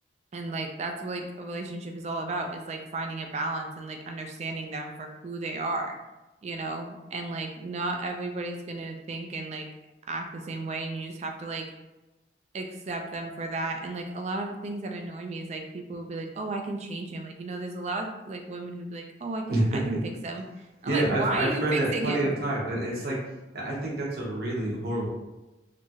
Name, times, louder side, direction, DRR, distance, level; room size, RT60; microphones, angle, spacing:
voice 1, 0.3-6.0 6.4-9.7 10.1-11.6 12.5-20.4 20.8-22.3, right 2 dB, 35° right, 4 dB, 0.3 m, -33 dB
voice 2, 19.5-19.8 20.8-23.2 23.5-25.1, right 1 dB, 55° right, -3 dB, 0.7 m, -27 dB
2.9 x 2.3 x 2.7 m, 1.0 s
head